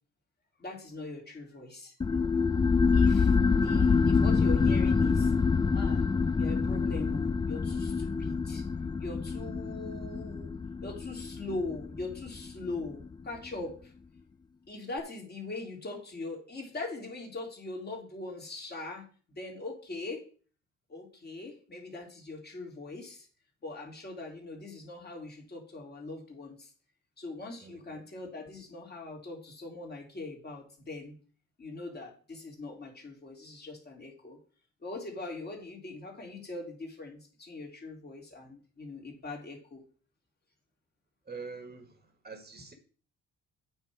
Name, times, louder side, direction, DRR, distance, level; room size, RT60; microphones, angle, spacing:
voice 1, 0.6-1.9 2.9-5.3 5.7-6.1 6.4-13.9 14.7-20.2 20.9-23.3 23.6-26.7 27.2-31.2 31.6-34.4 34.8-39.8, left 2 dB, 35° left, 3.0 m, -41 dB
sound 1, 2.0-13.1, left 5 dB, 15° left, 0.3 m, -26 dB
voice 2, 27.6-28.0 41.3-42.7, right 4 dB, 30° right, 1.6 m, -45 dB
8.6 x 5.6 x 4.7 m
cardioid pair, 90°, 30 cm